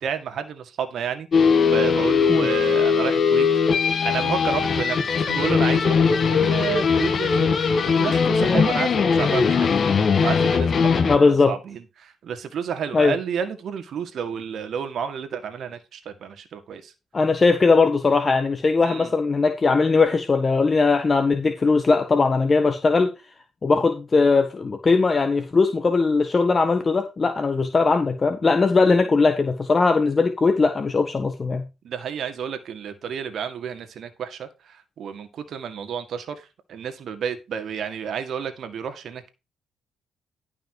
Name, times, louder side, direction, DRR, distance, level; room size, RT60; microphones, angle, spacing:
voice 1, 0.0-3.5 4.0-9.8 10.2-16.9 18.8-19.1 28.8-29.1 31.8-39.3, right 7 dB, 65° right, 1.8 m, -31 dB
sound 1, 1.3-11.2, left 5 dB, 50° left, 1.6 m, -20 dB
voice 2, 11.0-11.5 12.9-13.1 17.1-23.1 23.6-31.6, left 4 dB, 30° left, 1.3 m, -19 dB
12.0 x 5.5 x 4.8 m
cardioid pair, 90°, 0 cm